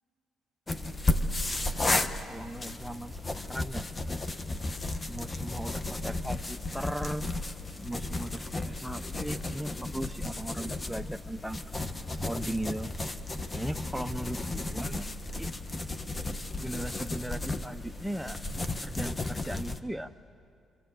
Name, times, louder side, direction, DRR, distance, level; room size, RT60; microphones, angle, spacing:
sound 1, 0.7-19.8, left 2 dB, 25° left, 1.2 m, -34 dB
voice 1, 2.3-3.8 5.1-7.3 7.8-11.6 12.2-12.9 13.5-15.5 16.6-18.4 18.8-20.1, right 1 dB, ahead, 7 dB, 0.5 m, -38 dB
26.0 x 24.5 x 8.0 m, 2.5 s
cardioid pair, 90°, 0 cm